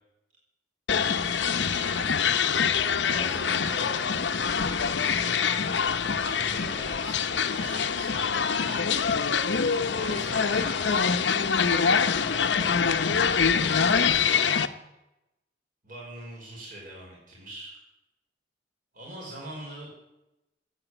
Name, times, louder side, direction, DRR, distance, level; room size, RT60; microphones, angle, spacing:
sound 1, 0.9-14.7, left 6 dB, 75° left, 0.8 m, -25 dB
voice 1, 1.6-2.4 3.0-5.4 6.2-9.1 9.9-11.1 11.8-14.6 15.8-17.7 18.9-19.9, right 1 dB, 45° right, -4 dB, 5.0 m, -43 dB
15.0 x 8.5 x 9.1 m, 0.94 s
head